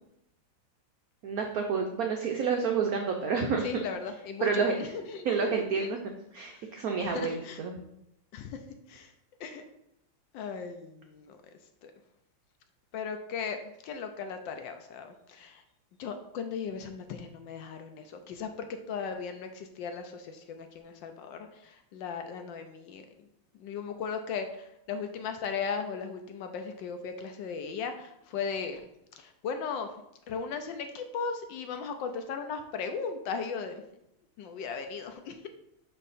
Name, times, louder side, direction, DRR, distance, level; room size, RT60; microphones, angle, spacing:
voice 1, 1.2-3.8 4.4-4.7 5.2-6.0 6.3-7.7, right 5 dB, 80° right, 2 dB, 0.8 m, -29 dB
voice 2, 3.6-5.9 7.0-7.6 8.3-8.6 8.9-9.1 9.4-9.6 10.3-11.4 11.8-11.9 12.9-13.6 13.8-15.6 16.0-23.3 23.5-28.9 29.2-29.9 30.3-33.8 34.4-35.5, left 5 dB, 75° left, 7 dB, 1.2 m, -37 dB
5.5 x 4.6 x 4.1 m, 0.81 s
omnidirectional pair, 2.3 m